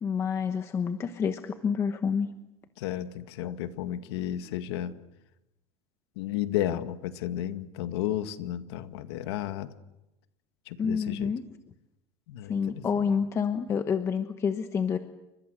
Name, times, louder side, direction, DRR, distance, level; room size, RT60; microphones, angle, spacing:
voice 1, 0.0-2.3 3.4-3.5 10.8-11.4 12.5-15.0, left 6 dB, 20° left, 8 dB, 1.0 m, -28 dB
voice 2, 2.8-5.0 6.2-9.7 10.7-11.3 12.3-12.8, left 12 dB, 80° left, 9 dB, 1.9 m, -33 dB
29.5 x 26.0 x 6.5 m, 0.93 s
supercardioid pair, 165°, 13 cm